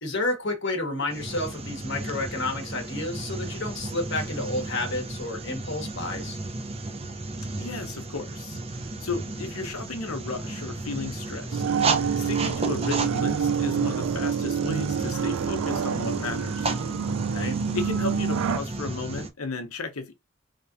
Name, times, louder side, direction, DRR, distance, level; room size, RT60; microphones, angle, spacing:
voice 1, 0.0-6.4 17.3-17.5, left 2 dB, 55° left, 1.4 m, -30 dB
sound 1, 1.1-19.3, right 3 dB, 30° right, 0.7 m, -34 dB
voice 2, 7.6-11.6 12.2-16.7 17.7-20.1, left 3 dB, 90° left, 1.0 m, -34 dB
sound 2, 11.5-18.6, right 7 dB, 85° right, 0.4 m, -27 dB
4.2 x 3.5 x 2.6 m
head